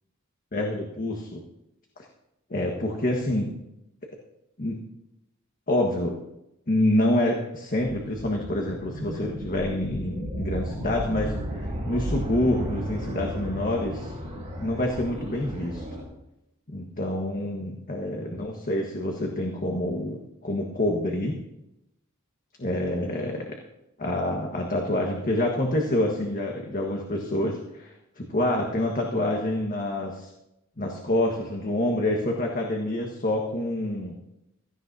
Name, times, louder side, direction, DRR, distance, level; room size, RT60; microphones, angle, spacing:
voice 1, 0.5-1.4 2.0-2.1 2.5-3.5 4.6-4.8 5.7-6.1 6.7-11.4 11.8-15.8 16.7-21.4 22.6-23.5 24.0-30.3 30.8-34.1, left 1 dB, 40° left, 1 dB, 1.4 m, -27 dB
sound 1, 8.4-16.0, equal, 30° right, 4.5 m, -34 dB
16.5 x 14.5 x 2.8 m, 0.87 s
head